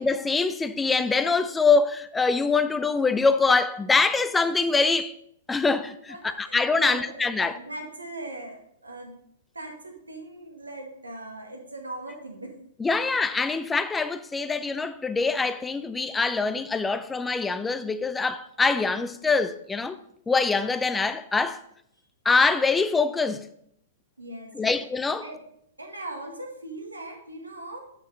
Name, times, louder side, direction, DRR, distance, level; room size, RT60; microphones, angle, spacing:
voice 1, 0.0-5.1 5.5-7.5 12.8-20.0 20.3-21.6 22.2-23.5 24.5-25.3, left 4 dB, 10° left, 0.5 m, -24 dB
voice 2, 6.1-9.2 9.5-12.6 24.2-24.8 25.2-25.4 25.8-27.8, right 2 dB, 85° right, 1.9 m, -39 dB
9.0 x 6.6 x 3.9 m
figure-of-eight pair, 110°, 0 cm